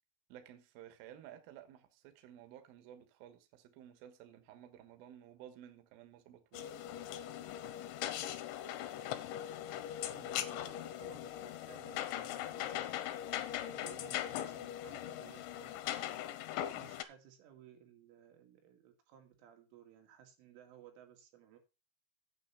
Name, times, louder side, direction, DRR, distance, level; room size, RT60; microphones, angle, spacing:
voice 1, 0.3-6.7, right 11 dB, 65° right, 2.6 m, -55 dB
sound 1, 6.5-17.0, left 12 dB, 80° left, 3.2 m, -40 dB
voice 2, 10.1-12.9 13.7-16.2 16.7-21.6, right 9 dB, 90° right, 4.6 m, -58 dB
9.2 x 7.5 x 5.6 m
omnidirectional pair, 5.5 m